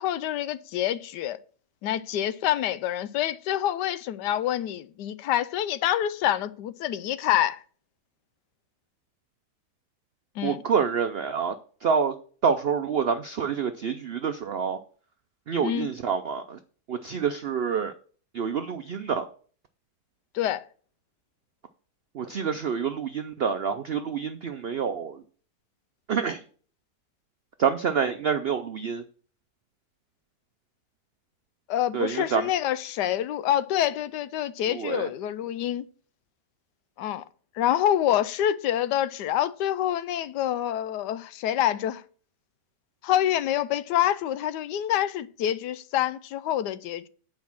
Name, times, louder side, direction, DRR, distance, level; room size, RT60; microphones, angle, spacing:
voice 1, 0.0-1.4 1.8-7.6 10.4-10.6 15.6-15.9 20.3-20.6 31.7-35.8 37.0-37.2 37.6-42.0 43.0-47.1, left 11 dB, 85° left, 1.2 m, -26 dB
voice 2, 10.4-11.5 11.8-12.1 12.4-14.8 15.5-16.6 16.9-17.9 18.3-19.3 22.1-25.2 26.1-26.4 27.6-29.0 31.9-32.5 34.7-35.1, right 6 dB, 80° right, 0.5 m, -27 dB
9.3 x 5.2 x 5.9 m
omnidirectional pair, 1.8 m